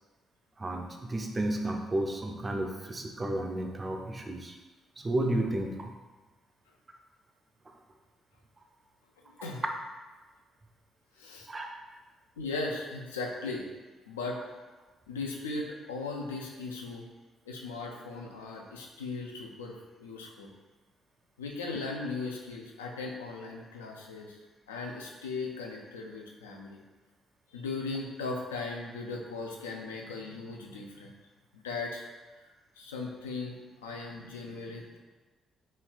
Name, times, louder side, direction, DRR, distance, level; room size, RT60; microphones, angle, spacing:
voice 1, 0.6-4.5 5.0-5.9 11.5-11.7, right 1 dB, 25° right, 3 dB, 0.4 m, -32 dB
voice 2, 11.1-11.5 12.4-13.7 14.1-14.4 15.1-17.1 17.5-20.5 21.4-24.4 24.7-26.8 27.5-31.1 31.5-32.1 32.4-32.5 32.8-35.0, left 3 dB, 80° left, 0 dB, 0.3 m, -38 dB
3.1 x 2.8 x 2.4 m, 1.2 s
figure-of-eight pair, 40°, 0 cm